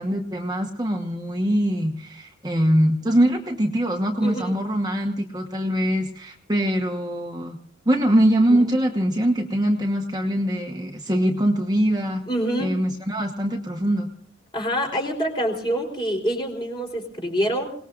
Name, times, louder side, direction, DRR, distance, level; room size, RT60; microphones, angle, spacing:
voice 1, 0.0-7.6 7.9-12.2 12.6-14.1, equal, 20° right, 2 dB, 1.2 m, -23 dB
voice 2, 4.2-4.5 8.5-8.7 12.3-12.7 14.5-17.7, equal, 25° left, 1 dB, 4.0 m, -26 dB
28.0 x 19.5 x 2.5 m, 0.63 s
head